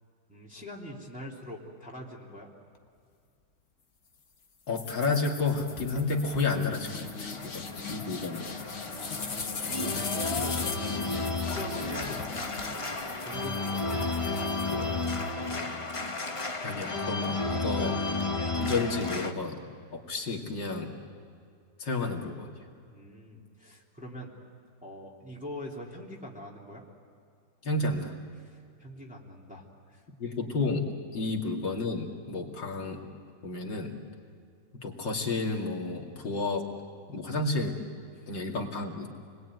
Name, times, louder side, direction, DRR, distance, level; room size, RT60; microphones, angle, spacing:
voice 1, 0.3-2.5 8.9-14.4 14.7-15.7 22.9-24.3 24.8-26.8 28.4-30.0 31.2-31.4, left 1 dB, 5° right, -4 dB, 2.9 m, -44 dB
voice 2, 4.7-8.4 16.6-18.0 18.5-19.6 19.9-20.9 21.8-22.5 27.6-28.1 30.2-33.0 33.4-33.9 34.8-36.7 37.1-37.8 38.3-39.1, left 3 dB, 75° left, 0 dB, 3.1 m, -31 dB
sound 1, 4.7-15.3, left 5 dB, 45° left, 1.6 m, -39 dB
Organ, 6.2-19.3, left 3 dB, 20° left, 1.0 m, -33 dB
29.0 x 21.0 x 9.3 m, 2.3 s
omnidirectional pair, 2.0 m